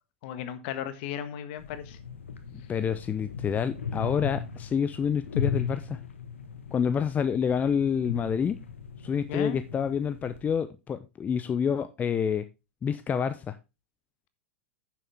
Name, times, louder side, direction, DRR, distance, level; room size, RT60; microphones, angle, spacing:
voice 1, 0.2-2.0 9.3-9.6, left 10 dB, 55° left, 1.5 m, -35 dB
sound 1, 1.6-10.5, left 6 dB, 85° left, 1.4 m, -37 dB
voice 2, 2.5-6.0 6.7-8.6 9.0-12.5 12.8-13.6, left 7 dB, 25° left, 0.7 m, -28 dB
10.0 x 7.3 x 3.5 m
hypercardioid pair, 95°, 7 cm